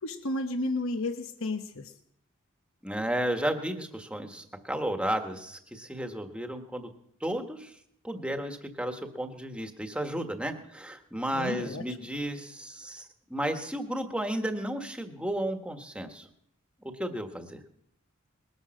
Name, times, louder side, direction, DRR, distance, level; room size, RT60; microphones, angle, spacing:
voice 1, 0.0-1.9 11.3-11.8, left 2 dB, 70° left, 7 dB, 1.0 m, -32 dB
voice 2, 2.8-6.9 7.2-7.7 8.0-16.3 16.8-17.6, right 1 dB, 5° right, 5 dB, 1.4 m, -33 dB
20.5 x 10.5 x 6.4 m, 0.72 s
head